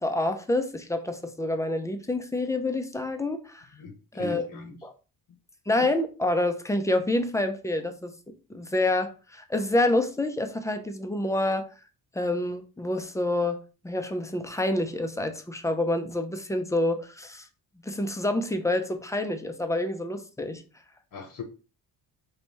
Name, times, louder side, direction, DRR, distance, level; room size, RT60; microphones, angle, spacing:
voice 1, 0.0-3.7 4.1-4.9 5.7-8.1 8.5-11.7 12.1-17.5 17.8-20.6, left 2 dB, 10° left, 0.4 m, -27 dB
voice 2, 3.8-4.8 21.1-21.4, left 3 dB, 65° left, 0.9 m, -39 dB
3.4 x 2.7 x 4.0 m
cardioid pair, 150°, 36 cm